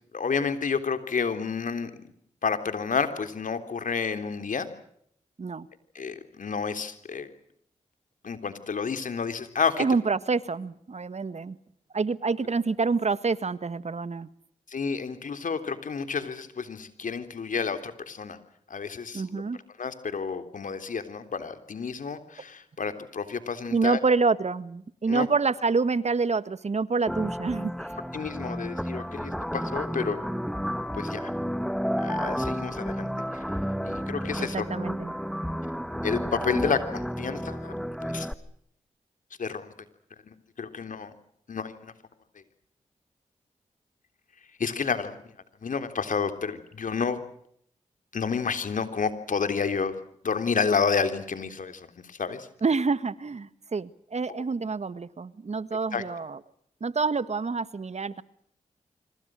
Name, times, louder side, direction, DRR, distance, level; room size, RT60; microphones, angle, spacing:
voice 1, 0.1-1.9 2.4-4.7 6.0-7.3 8.2-9.8 14.7-18.4 18.7-19.4 19.8-24.0 25.1-25.3 28.1-30.2 30.9-31.3 32.0-33.4 33.8-34.7 36.0-37.7 38.0-38.3 39.4-39.7 40.3-41.1 41.5-41.9 44.6-45.2 45.6-47.2 48.1-49.9 50.2-52.5 55.9-56.0, left 5 dB, 70° left, 9 dB, 3.5 m, -30 dB
voice 2, 9.8-11.6 11.9-14.3 19.1-19.6 23.7-27.9 34.4-35.1 52.6-56.4 56.8-58.2, right 4 dB, 55° right, 15 dB, 1.6 m, -27 dB
sound 1, 27.1-38.3, equal, ahead, 1.9 m, -31 dB
26.0 x 26.0 x 6.4 m, 0.70 s
cardioid pair, 40°, 14 cm